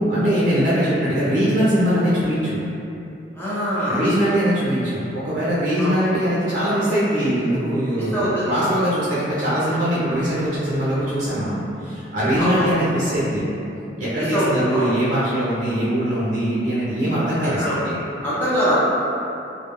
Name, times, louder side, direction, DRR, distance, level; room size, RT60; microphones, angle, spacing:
voice 1, 0.0-2.6 3.9-13.4 14.0-17.9, equal, 45° right, -9 dB, 0.5 m, -21 dB
voice 2, 3.4-4.1 5.8-6.1 8.1-8.5 12.4-12.7 14.2-14.9 17.6-17.8 18.2-18.8, equal, 10° left, -11 dB, 0.7 m, -23 dB
2.2 x 2.1 x 2.9 m, 2.7 s
head